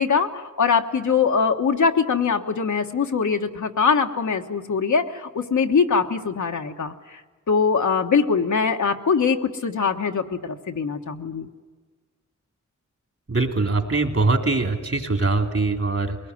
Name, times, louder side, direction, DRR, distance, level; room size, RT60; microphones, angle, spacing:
voice 1, 0.0-6.9 7.5-11.5, left 5 dB, 80° left, 4 dB, 1.3 m, -22 dB
voice 2, 13.3-16.2, right 3 dB, 55° right, 4 dB, 3.1 m, -22 dB
22.0 x 19.0 x 9.7 m, 1.3 s
cardioid pair, 55°, 29 cm